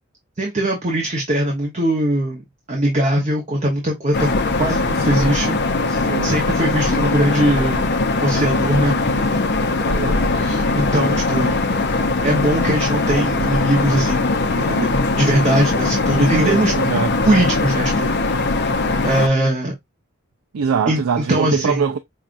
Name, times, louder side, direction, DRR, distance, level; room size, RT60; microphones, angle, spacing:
voice 1, 0.4-2.4 2.7-4.3 4.6-5.6 5.9-7.9 8.2-8.9 10.3-11.5 12.2-16.7 17.2-18.6 19.0-19.7 20.9-21.9, right 1 dB, 35° right, 0.9 m, -21 dB
sound 1, 4.1-19.3, left 3 dB, 50° left, 0.6 m, -20 dB
voice 2, 9.8-10.3 16.3-17.2 20.5-22.0, right 6 dB, 75° right, 0.4 m, -23 dB
5.6 x 2.3 x 2.5 m
head